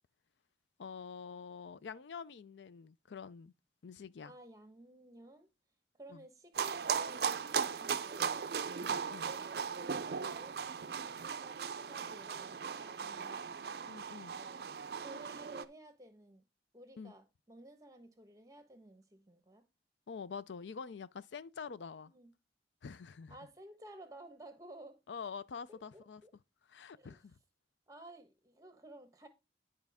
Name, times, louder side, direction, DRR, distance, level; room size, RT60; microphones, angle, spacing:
voice 1, 0.8-3.5 3.8-4.3 6.1-6.2 8.8-9.3 13.9-14.3 17.0-17.1 20.1-22.1 22.8-23.4 25.1-26.2 26.7-27.4, left 6 dB, 85° left, 0.5 m, -46 dB
voice 2, 4.2-5.5 6.0-8.6 9.2-13.5 14.3-14.7 15.0-16.4 16.7-19.6 22.1-22.3 23.3-25.0 25.7-26.3 27.0-27.2 27.9-29.3, right 1 dB, 20° right, 1.1 m, -55 dB
sound 1, 6.6-15.7, right 6 dB, 60° right, 0.4 m, -38 dB
10.5 x 5.1 x 3.5 m
head